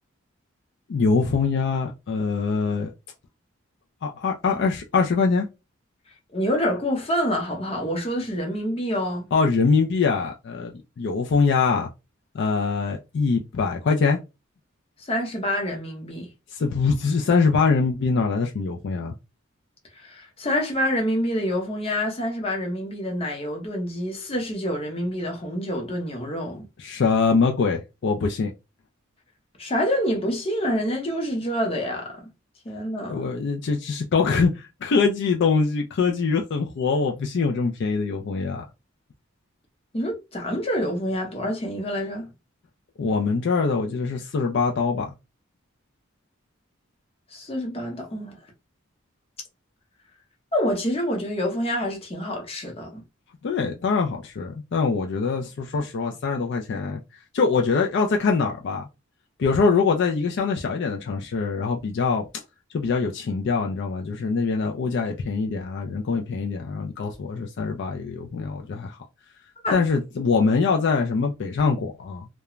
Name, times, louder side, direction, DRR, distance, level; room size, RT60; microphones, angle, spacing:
voice 1, 0.9-2.9 4.0-5.5 9.3-11.9 12.3-14.2 16.5-19.1 26.8-28.5 33.1-38.6 43.0-45.1 53.4-57.0 57.3-58.9 59.4-62.2 62.7-69.0 69.7-72.3, left 4 dB, 60° left, 0.4 m, -23 dB
voice 2, 6.3-9.3 15.0-16.3 19.9-26.6 29.6-32.3 32.6-33.3 39.9-42.3 47.3-48.4 50.5-53.0 69.6-69.8, equal, 30° left, 0.7 m, -27 dB
2.3 x 2.1 x 3.0 m
head